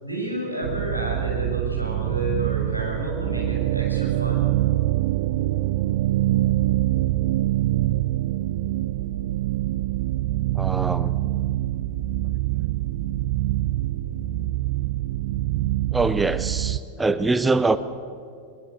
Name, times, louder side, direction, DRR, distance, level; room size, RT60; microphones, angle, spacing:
voice 1, 0.0-4.6, equal, 90° right, -2 dB, 7.1 m, -30 dB
sound 1, 0.6-16.8, right 15 dB, 55° right, 0.6 m, -25 dB
voice 2, 10.5-11.2 15.9-17.8, right 3 dB, 10° right, 14 dB, 0.7 m, -23 dB
22.0 x 21.5 x 8.1 m, 2.3 s
figure-of-eight pair, 90°, 0 cm